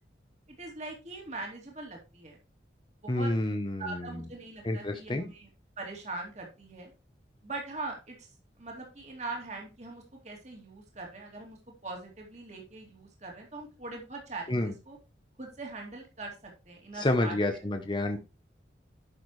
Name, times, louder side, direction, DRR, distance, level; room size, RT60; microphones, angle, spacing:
voice 1, 0.5-2.4 3.0-3.3 3.8-5.5 5.8-6.9 7.4-8.3 8.6-15.0 15.4-17.4, right 3 dB, 40° right, 0 dB, 2.7 m, -41 dB
voice 2, 3.1-4.2 4.6-5.2 14.5-14.7 17.0-18.2, left 1 dB, 25° left, 5 dB, 0.8 m, -29 dB
10.5 x 6.7 x 3.2 m, 0.29 s
head